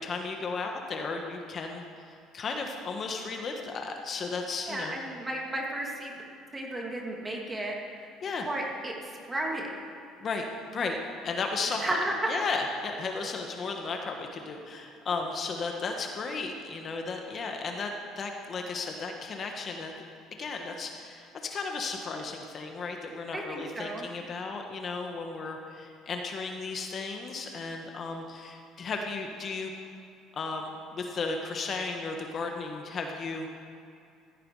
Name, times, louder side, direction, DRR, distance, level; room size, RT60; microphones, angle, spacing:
voice 1, 0.0-1.8 2.3-5.0 8.2-8.5 10.2-10.5 10.7-11.0 11.2-12.0 12.3-17.9 18.2-19.9 20.4-29.7 30.3-33.5, left 4 dB, 40° left, 3 dB, 1.4 m, -34 dB
voice 2, 4.7-6.2 6.5-8.1 8.5-9.7 11.8-12.1 23.3-24.1, right 1 dB, 15° right, -1 dB, 2.6 m, -34 dB
16.0 x 14.0 x 4.9 m, 2.5 s
cardioid pair, 120°, 0 cm